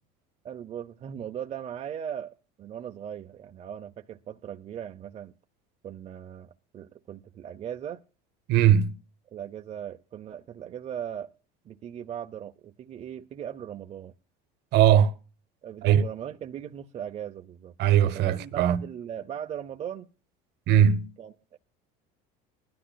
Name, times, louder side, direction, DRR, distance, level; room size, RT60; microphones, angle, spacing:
voice 1, 0.4-5.3 5.8-8.0 9.3-11.3 11.6-14.1 15.6-17.7 18.1-20.1 21.2-21.6, right 9 dB, 30° right, 0.6 m, -38 dB
voice 2, 8.5-8.9 14.7-15.1 15.8-16.0 17.8-18.8 20.7-21.1, right 10 dB, 55° right, 1.0 m, -20 dB
21.0 x 12.5 x 2.3 m
cardioid pair, 135°, 20 cm